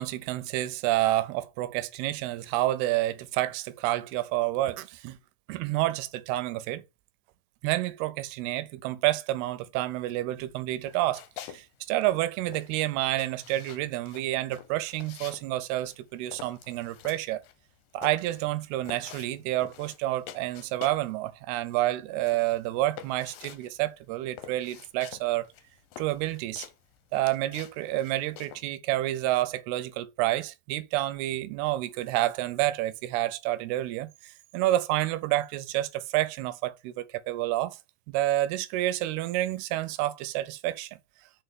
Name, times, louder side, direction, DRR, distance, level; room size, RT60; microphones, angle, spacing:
voice 1, 0.0-5.2 5.5-6.8 7.6-17.4 17.9-25.5 26.0-26.7 27.1-37.8 38.1-40.9, right 15 dB, 80° right, 2.6 m, -29 dB
sound 1, 10.8-11.6 11.9-21.1 21.4-28.7, left 11 dB, 75° left, 2.2 m, -47 dB
5.6 x 4.8 x 5.2 m
omnidirectional pair, 4.6 m